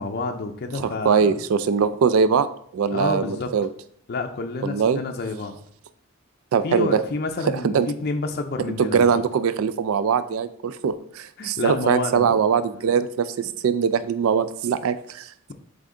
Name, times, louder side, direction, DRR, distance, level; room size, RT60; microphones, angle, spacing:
voice 1, 0.0-1.4 2.9-3.5 4.1-5.6 6.6-9.2 11.4-12.3, left 3 dB, 45° left, 4 dB, 0.4 m, -29 dB
voice 2, 0.7-2.5 2.7-3.7 4.6-5.0 6.5-7.0 7.5-7.9 8.8-15.3, right 6 dB, 75° right, 13 dB, 0.3 m, -22 dB
7.7 x 3.5 x 3.7 m, 0.64 s
head